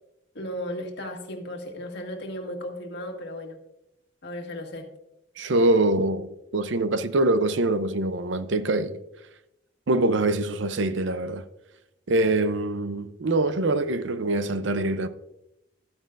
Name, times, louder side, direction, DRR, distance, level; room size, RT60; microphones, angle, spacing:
voice 1, 0.4-3.6 4.2-4.9, left 1 dB, 65° left, 1.7 m, -35 dB
voice 2, 5.4-9.0 9.9-11.4 12.1-15.1, right 2 dB, 75° right, 0.6 m, -24 dB
13.5 x 9.2 x 2.5 m
head